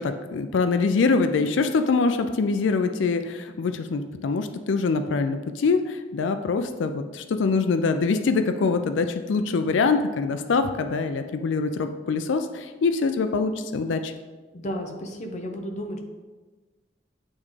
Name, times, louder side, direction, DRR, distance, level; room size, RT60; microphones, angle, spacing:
voice 1, 0.0-14.1, left 4 dB, 85° left, 8 dB, 0.4 m, -24 dB
voice 2, 14.5-16.0, equal, 40° left, 3 dB, 0.7 m, -33 dB
8.5 x 3.6 x 3.2 m, 1.3 s
head